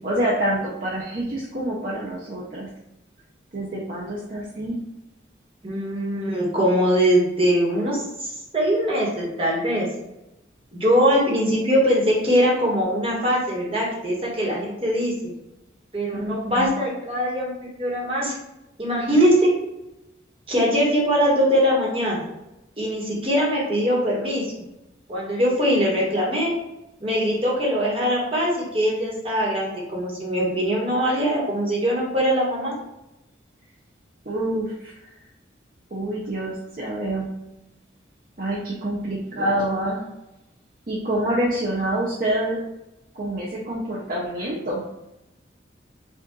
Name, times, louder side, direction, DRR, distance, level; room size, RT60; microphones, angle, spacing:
voice 1, 0.0-2.7 3.5-4.8 16.1-16.7 34.3-35.1 35.9-37.3 38.4-40.0 40.9-42.6 43.1-44.8, right 1 dB, 45° right, -5 dB, 0.7 m, -27 dB
voice 2, 5.6-9.9 10.7-15.1 15.9-17.5 17.8-18.4 18.8-19.5 20.5-22.3 22.8-24.5 25.1-26.5 27.0-32.7, equal, 30° right, -4 dB, 1.4 m, -22 dB
5.2 x 2.5 x 3.8 m, 0.92 s
head